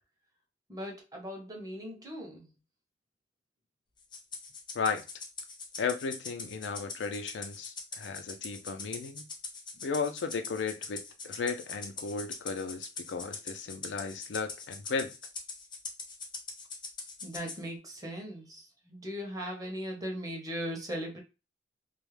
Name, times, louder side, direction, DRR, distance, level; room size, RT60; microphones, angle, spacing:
voice 1, 0.7-2.5 9.7-9.8 17.2-21.2, equal, 20° right, 0.7 m, -39 dB
Rattle (instrument), 4.1-17.6, left 4 dB, 25° left, 0.5 m, -42 dB
voice 2, 4.7-5.0 5.8-9.3 9.8-15.1, left 5 dB, 90° left, 0.4 m, -35 dB
2.3 x 2.0 x 3.1 m
head